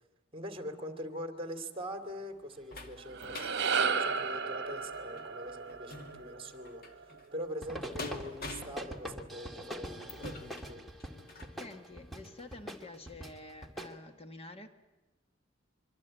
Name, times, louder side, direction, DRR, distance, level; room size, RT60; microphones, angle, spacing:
voice 1, 0.3-10.8, equal, 30° right, 2.6 m, -43 dB
sound 1, 1.8-11.6 12.2-12.3 12.6-12.7, left 2 dB, 50° left, 2.5 m, -48 dB
sound 2, 3.0-7.5, right 5 dB, 60° right, 1.2 m, -34 dB
sound 3, 7.5-14.0, equal, ahead, 2.2 m, -44 dB
voice 2, 11.6-14.7, left 2 dB, 30° left, 1.4 m, -48 dB
25.5 x 24.5 x 8.9 m
head